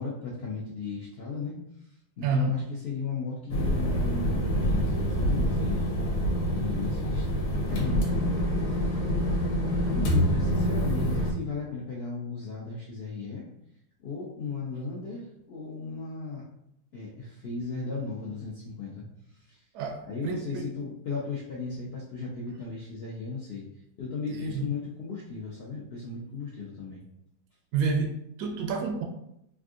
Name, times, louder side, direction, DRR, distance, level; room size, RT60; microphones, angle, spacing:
voice 1, 0.0-1.5 2.2-5.9 6.5-7.2 7.7-9.0 9.4-13.4 14.0-16.4 16.9-19.0 19.3-19.6 20.1-23.6 24.0-27.0, left 4 dB, 70° left, -5 dB, 0.6 m, -36 dB
voice 2, 2.2-2.6 19.7-20.7 24.3-24.7 27.7-29.0, right 3 dB, 85° right, 4 dB, 1.2 m, -29 dB
sound 1, 3.5-11.3, equal, 85° left, 1.3 m, -26 dB
3.5 x 2.5 x 2.4 m, 0.77 s
omnidirectional pair, 1.7 m